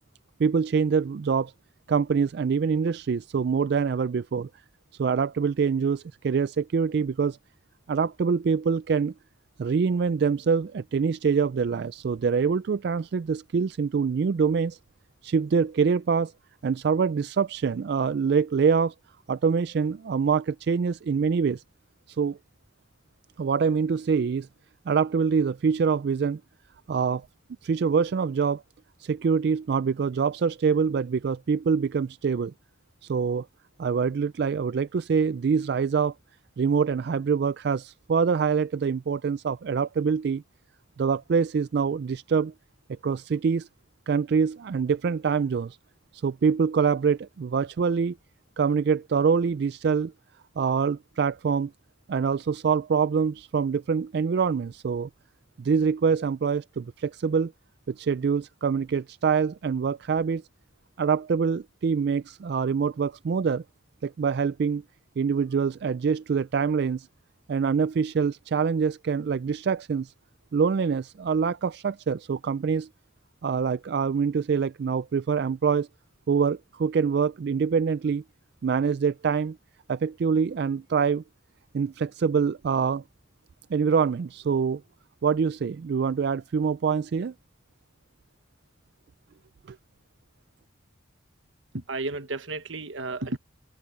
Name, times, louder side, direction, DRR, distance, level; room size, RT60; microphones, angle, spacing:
voice 1, 0.4-1.5 1.9-4.5 5.0-7.4 7.9-9.1 9.6-14.8 15.2-16.3 16.6-18.9 19.3-21.6 22.2-22.4 23.4-24.5 24.9-26.4 26.9-27.3 27.6-28.6 29.0-32.5 33.1-33.5 33.8-36.1 36.6-40.4 41.0-42.5 43.0-43.7 44.1-45.8 46.2-48.2 48.6-50.1 50.6-51.7 52.1-55.1 55.6-57.5 57.9-60.4 61.0-63.6 64.0-64.8 65.2-67.1 67.5-70.1 70.5-72.9 73.4-75.9 76.3-78.2 78.6-79.6 79.9-81.2 81.7-83.0 83.7-84.8 85.2-87.3 89.7-89.8, right 6 dB, 55° right, 0.3 m, -25 dB
voice 2, 91.7-93.4, right 2 dB, 80° right, 1.4 m, -32 dB
head